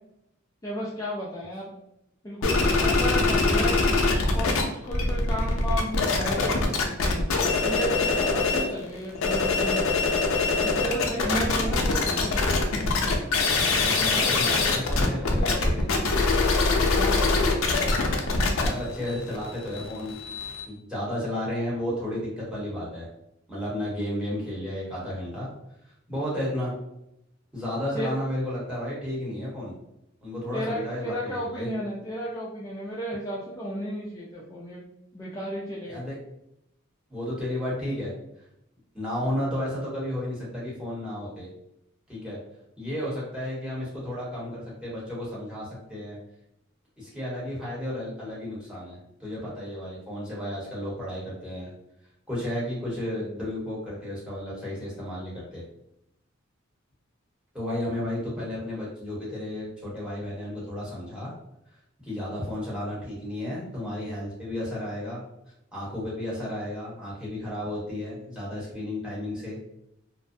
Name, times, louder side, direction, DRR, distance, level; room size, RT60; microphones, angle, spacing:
voice 1, 0.6-1.7 2.2-4.0 4.3-7.3 7.6-9.8 10.6-12.4 16.9-17.3 27.9-28.1 30.5-34.8 35.1-36.0, equal, 15° left, -7 dB, 0.4 m, -33 dB
sound 1, 2.4-4.6 4.9-8.7 9.1-20.6, left 3 dB, 90° left, 0.5 m, -23 dB
voice 2, 13.7-15.9 18.5-20.1 20.7-23.1 23.5-25.5 26.1-26.7 27.5-29.7 30.2-31.7 35.9-36.2 37.1-38.1 38.9-41.5 42.1-42.4 42.8-46.2 47.0-51.7 52.3-55.6 57.5-61.3 62.0-65.2 65.7-69.6, left 1 dB, 5° right, -7 dB, 1.0 m, -33 dB
2.5 x 2.1 x 2.5 m, 0.81 s
head